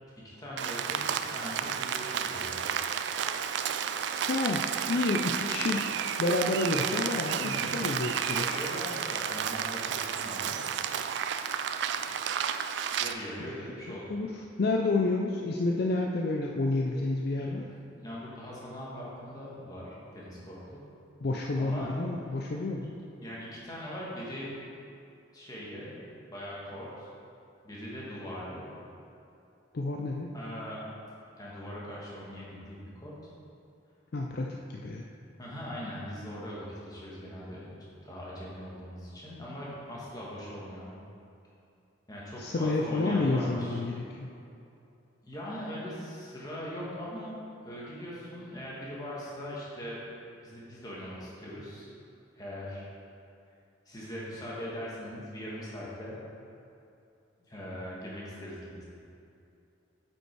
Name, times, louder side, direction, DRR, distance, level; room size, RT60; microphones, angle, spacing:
voice 1, 0.2-2.6 7.4-7.9 8.5-10.6 13.0-14.1 17.4-17.5 18.0-20.8 21.6-21.9 22.3-22.4 23.2-24.5 25.3-25.9 26.3-27.1 27.6-28.7 30.3-30.9 31.4-33.1 35.4-37.7 38.0-40.9 42.1-43.8 45.2-47.3 47.6-50.0 50.4-51.9 52.3-52.9 53.8-56.2 57.5-58.8, equal, 20° left, -6 dB, 1.5 m, -41 dB
Rain, 0.6-13.1, right 8 dB, 60° right, 0.3 m, -32 dB
voice 2, 4.3-4.6 4.9-5.9 6.2-8.6 13.9-14.3 14.6-17.7 21.2-23.0 29.7-30.3 34.1-35.0 42.4-44.3, left 2 dB, 50° left, 0 dB, 0.4 m, -29 dB
8.0 x 5.3 x 4.6 m, 2.6 s
head